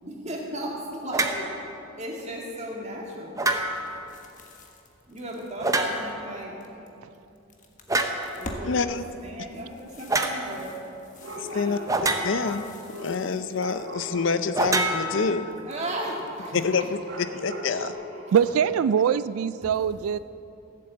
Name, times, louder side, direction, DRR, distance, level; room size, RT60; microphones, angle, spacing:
voice 1, 0.0-1.5 2.0-3.4 5.1-6.6 8.3-8.9 9.2-10.7 11.5-11.9 15.7-16.9 17.2-18.4 19.6-19.7, right 1 dB, 30° right, -1 dB, 2.1 m, -36 dB
sound 1, 1.1-1.5 3.4-4.0 5.6-6.3 7.9-8.3 10.1-10.4 11.9-12.6 14.5-15.7, right 2 dB, 15° right, 0.7 m, -26 dB
sound 2, 4.1-6.9 7.3-8.7 9.0-14.0 14.3-14.9 15.5-16.9, left 1 dB, 35° left, 1.2 m, -47 dB
voice 2, 8.6-9.0 11.4-11.8 12.2-12.7 13.0-15.5 16.5-17.9, left 4 dB, 60° left, 11 dB, 0.5 m, -27 dB
sound 3, 9.0-9.1 11.2-12.1 12.9-15.0 17.0-17.9, equal, 60° right, 1.2 m, -39 dB
voice 3, 18.3-20.2, right 8 dB, 90° right, 15 dB, 0.3 m, -23 dB
15.5 x 7.6 x 7.9 m, 2.8 s
head